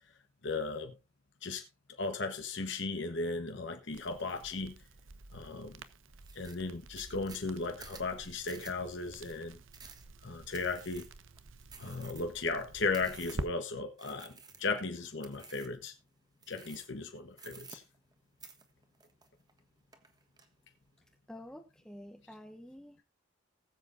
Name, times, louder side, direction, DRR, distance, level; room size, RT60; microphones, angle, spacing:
voice 1, 0.4-0.9 1.4-1.6 2.0-4.8 5.3-5.8 6.3-9.6 10.2-11.1 11.8-15.9 16.5-17.8, left 3 dB, 60° left, 1.2 m, -36 dB
Crackle, 3.9-13.5, right 2 dB, 75° right, 1.0 m, -48 dB
sound 1, 4.3-4.5 5.0-5.5 5.8-5.9 6.2-13.6 14.0-14.8 15.2-15.8 16.4-17.0 17.3-18.1 18.4-19.6 19.9-20.5, right 5 dB, 20° right, 1.3 m, -53 dB
voice 2, 21.3-23.0, left 1 dB, 5° left, 0.9 m, -49 dB
19.5 x 7.7 x 2.6 m
head